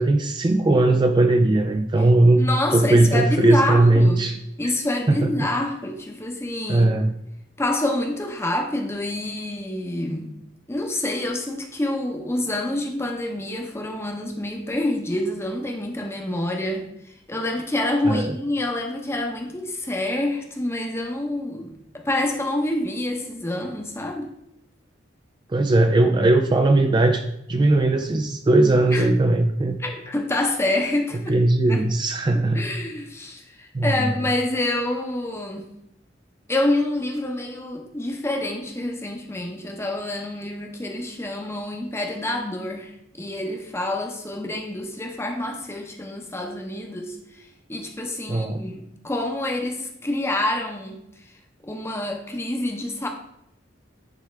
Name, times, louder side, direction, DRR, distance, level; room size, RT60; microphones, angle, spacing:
voice 1, 0.0-2.5 2.7-4.4 4.6-4.7 5.1-5.5 6.7-7.1 18.1-18.3 25.5-27.2 27.5-29.8 31.3-32.6 33.7-34.1 48.3-48.6, right 2 dB, 25° right, 5 dB, 0.4 m, -18 dB
voice 2, 2.4-4.3 4.6-7.0 7.6-10.3 10.7-16.9 17.3-24.3 28.9-29.1 29.8-31.3 31.7-31.8 32.5-35.7 36.5-51.0 51.6-53.1, left 1 dB, 15° left, 3 dB, 0.8 m, -27 dB
9.8 x 3.5 x 3.3 m, 0.79 s
head